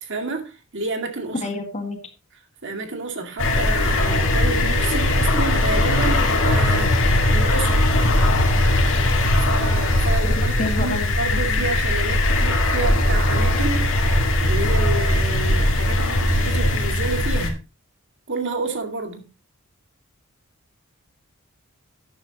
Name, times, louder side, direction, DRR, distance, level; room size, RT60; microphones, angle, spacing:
voice 1, 0.0-1.4 2.6-7.9 9.4-10.5 10.8-13.9 14.4-17.6 18.3-19.3, right 3 dB, 60° right, 2.2 m, -29 dB
voice 2, 1.3-2.0 10.3-11.7, left 2 dB, 35° left, 1.8 m, -29 dB
sound 1, 3.4-17.5, left 1 dB, 60° left, 2.2 m, -19 dB
12.0 x 9.5 x 3.0 m
head